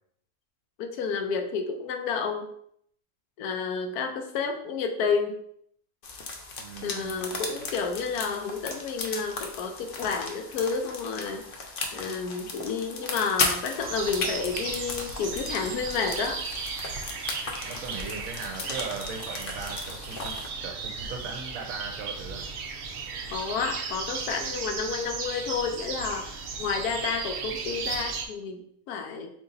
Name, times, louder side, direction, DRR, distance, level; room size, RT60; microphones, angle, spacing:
voice 1, 0.8-2.5 3.4-5.3 6.8-11.5 11.9-16.4 18.6-18.8 23.3-29.3, left 5 dB, 90° left, 5 dB, 1.2 m, -30 dB
sound 1, 6.0-20.5, left 3 dB, 55° left, 0.7 m, -36 dB
voice 2, 6.6-7.3 17.6-22.5, right 5 dB, 70° right, 2 dB, 0.9 m, -39 dB
sound 2, 13.8-28.3, right 5 dB, 90° right, 0.5 m, -36 dB
3.9 x 2.9 x 3.8 m, 0.68 s
omnidirectional pair, 1.6 m